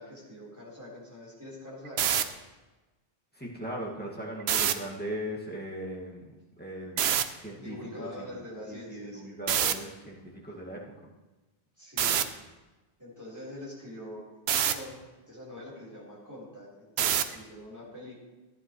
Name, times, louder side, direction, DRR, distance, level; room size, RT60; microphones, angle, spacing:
voice 1, 0.0-2.5 7.6-9.3 11.8-12.3 13.0-14.3 14.6-15.0 15.3-18.2, left 1 dB, 15° right, -7 dB, 3.9 m, -44 dB
sound 1, 1.9-2.2 4.4-4.7 7.0-7.2 9.5-9.7 12.0-12.2 14.5-14.7 17.0-17.4, right 9 dB, 75° right, 0.9 m, -25 dB
voice 2, 3.3-7.0 7.4-8.3 8.7-10.9, right 1 dB, 10° left, -4 dB, 1.8 m, -39 dB
14.5 x 9.5 x 3.1 m, 1.1 s
omnidirectional pair, 1.1 m